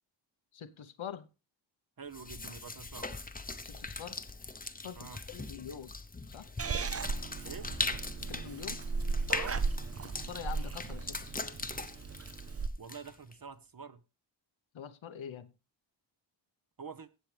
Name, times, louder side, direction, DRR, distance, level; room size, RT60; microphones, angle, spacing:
voice 1, 0.5-1.3 3.6-4.2 4.8-5.9 6.3-6.5 8.2-8.8 10.0-11.5 14.7-15.5, left 8 dB, 90° left, 1.0 m, -45 dB
voice 2, 2.0-3.1 4.9-5.2 7.4-7.7 9.3-9.6 12.8-14.0 16.8-17.1, right 5 dB, 50° right, 1.0 m, -46 dB
sound 1, 2.1-13.3, left 3 dB, 20° left, 0.8 m, -40 dB
Purr / Meow, 6.6-12.7, right 4 dB, 30° right, 0.5 m, -36 dB
15.5 x 7.5 x 3.4 m
wide cardioid pair, 80°, 46 cm